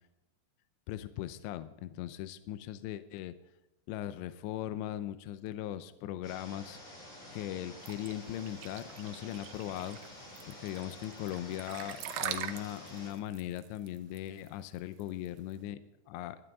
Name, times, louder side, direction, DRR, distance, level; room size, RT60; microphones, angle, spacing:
voice 1, 0.9-3.3 3.9-6.8 7.3-10.0 10.5-15.8 16.1-16.4, left 12 dB, 80° left, 12 dB, 2.7 m, -39 dB
sound 1, 6.2-13.1, left 1 dB, 45° left, 8.2 m, -50 dB
sound 2, 7.9-15.5, right 12 dB, 80° right, 2.5 m, -42 dB
20.5 x 13.0 x 3.6 m, 0.93 s
omnidirectional pair, 5.4 m